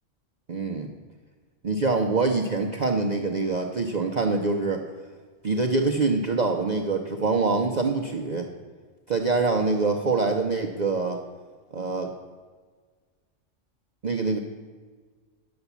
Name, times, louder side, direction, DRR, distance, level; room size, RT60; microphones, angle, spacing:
voice 1, 0.5-0.9 1.6-4.8 5.4-8.5 9.1-11.2 11.7-12.1 14.0-14.4, right 3 dB, 40° right, 1 dB, 0.7 m, -25 dB
9.7 x 7.0 x 8.1 m, 1.5 s
omnidirectional pair, 1.3 m